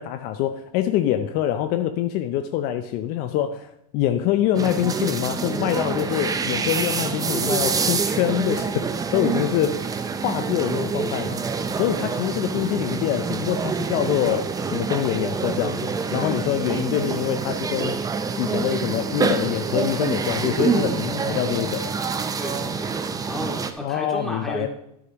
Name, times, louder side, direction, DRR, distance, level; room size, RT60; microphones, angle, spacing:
voice 1, 0.0-9.9 10.2-11.4 11.8-18.0 18.4-22.0 23.8-24.7, left 11 dB, 50° left, 8 dB, 0.6 m, -25 dB
sound 1, 4.5-23.7, right 5 dB, 20° right, 0.7 m, -26 dB
voice 2, 16.2-16.8 22.4-23.0 23.2-24.7, left 1 dB, ahead, -1 dB, 2.2 m, -34 dB
9.5 x 9.3 x 3.0 m, 0.79 s
hypercardioid pair, 110°, 20 cm